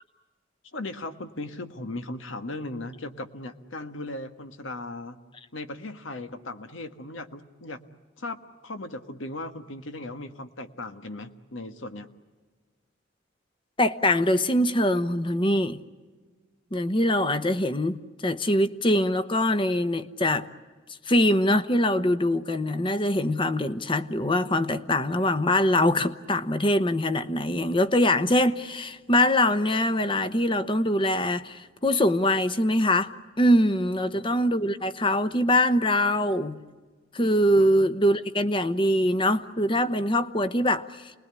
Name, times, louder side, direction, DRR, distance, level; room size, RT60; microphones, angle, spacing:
voice 1, 0.7-5.2 5.5-7.8 8.2-12.1 34.1-34.2 37.6-37.7, left 2 dB, 85° left, 1.6 m, -37 dB
voice 2, 13.8-15.8 16.7-20.5 21.1-36.6 37.1-41.1, left 1 dB, 25° left, 1.0 m, -23 dB
28.5 x 20.5 x 9.8 m
head